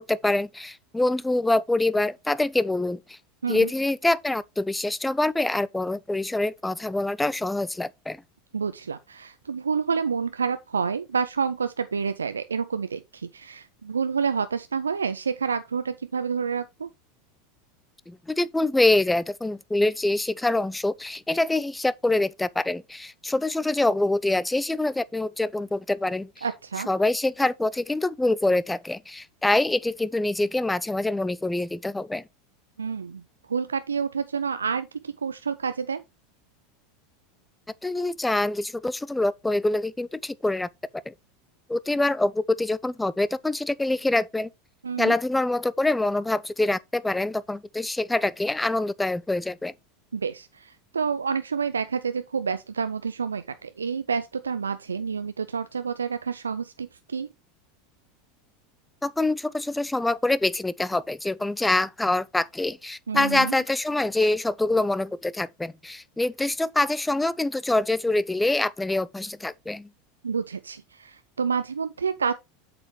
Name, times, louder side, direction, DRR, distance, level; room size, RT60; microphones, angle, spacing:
voice 1, 0.0-3.2 3.5-8.2 18.1-26.4 26.9-32.2 37.8-41.1 41.7-44.5 45.0-49.7 59.0-69.9, left 2 dB, 10° left, 0.5 m, -25 dB
voice 2, 8.5-16.9 26.4-26.9 32.8-33.2 33.5-36.0 44.8-45.1 50.1-57.3 63.1-63.5 70.2-72.3, right 6 dB, 80° right, 0.5 m, -28 dB
8.1 x 6.9 x 3.2 m
figure-of-eight pair, 80°, 0 cm